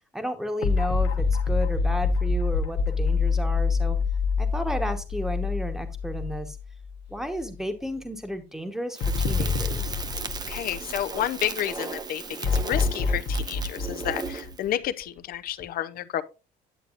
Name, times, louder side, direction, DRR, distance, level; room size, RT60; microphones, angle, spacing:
voice 1, 0.1-4.0 4.4-6.6 7.1-9.9, equal, 5° right, 1.1 m, -33 dB
sound 1, 0.6-7.0 7.3-7.4 9.0-11.5 12.4-15.2, left 4 dB, 80° left, 1.1 m, -26 dB
Crackle, 8.9-14.6, right 4 dB, 25° right, 0.6 m, -36 dB
voice 2, 10.5-16.2, left 11 dB, 60° left, 0.6 m, -30 dB
9.0 x 7.9 x 2.5 m
cardioid pair, 110°, 17 cm